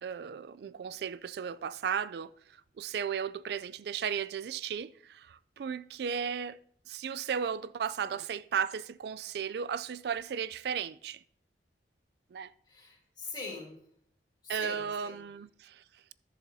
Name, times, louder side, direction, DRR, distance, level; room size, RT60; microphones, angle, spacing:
voice 1, 0.0-2.3 2.8-6.6 6.9-11.2 12.3-12.5 14.5-15.8, right 7 dB, 65° right, 0.3 m, -35 dB
voice 2, 12.7-13.8 14.4-15.2, left 3 dB, 25° left, 2.4 m, -43 dB
13.0 x 7.1 x 2.7 m
head